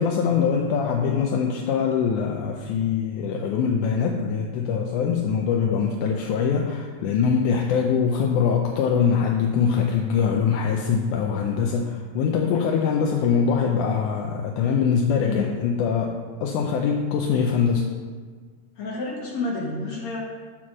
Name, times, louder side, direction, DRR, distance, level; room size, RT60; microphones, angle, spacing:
voice 1, 0.0-17.9, left 6 dB, 80° left, 1 dB, 1.9 m, -23 dB
voice 2, 18.8-20.2, left 3 dB, 60° left, -3 dB, 2.2 m, -29 dB
9.0 x 4.4 x 6.0 m, 1.5 s
omnidirectional pair, 3.9 m